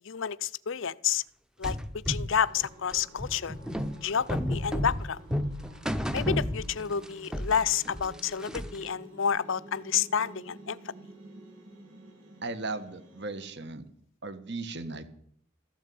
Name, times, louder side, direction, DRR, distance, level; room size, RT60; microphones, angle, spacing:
voice 1, 0.0-1.2 1.6-3.6 4.0-5.2 6.1-10.8, left 7 dB, 60° left, 18 dB, 0.5 m, -30 dB
sound 1, 1.6-7.1 7.3-8.9, equal, 5° right, 0.7 m, -32 dB
sound 2, 2.4-13.4, right 1 dB, 80° right, 7.2 m, -50 dB
voice 2, 12.4-13.8 14.2-15.1, right 3 dB, 50° right, 12 dB, 1.5 m, -36 dB
14.0 x 12.0 x 8.5 m, 0.65 s
head